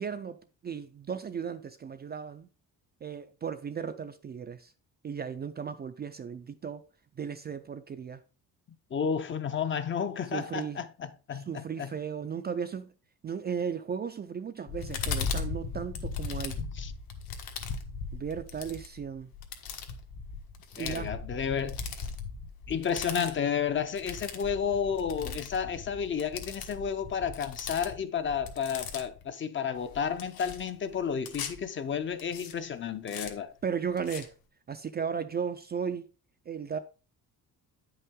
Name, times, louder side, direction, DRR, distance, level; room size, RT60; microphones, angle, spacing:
voice 1, 0.0-2.5 3.0-4.7 5.0-6.8 7.2-8.2 10.3-10.8 11.3-12.9 13.2-16.6 18.1-19.3 20.7-21.1 33.6-34.3 34.7-36.1 36.5-36.8, right 7 dB, 30° right, 0.4 m, -35 dB
voice 2, 8.9-11.9 16.7-16.9 20.8-21.8 22.7-33.5, left 7 dB, 30° left, 0.6 m, -32 dB
sound 1, 14.7-29.2 29.8-31.6 32.2-32.5 33.1-33.3 34.0-34.3, left 5 dB, 70° left, 1.5 m, -38 dB
9.5 x 5.6 x 3.6 m
cardioid pair, 170°, 37 cm